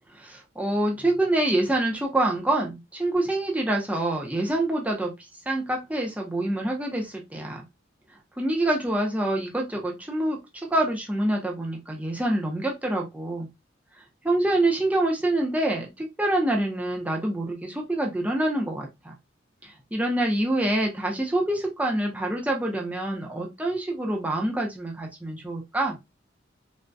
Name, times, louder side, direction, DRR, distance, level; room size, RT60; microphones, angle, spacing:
voice 1, 0.3-5.1 5.5-7.6 8.4-10.4 10.7-13.5 14.2-19.1 19.6-26.0, right 1 dB, 5° right, 0 dB, 0.5 m, -26 dB
3.4 x 2.2 x 2.5 m, 0.22 s
head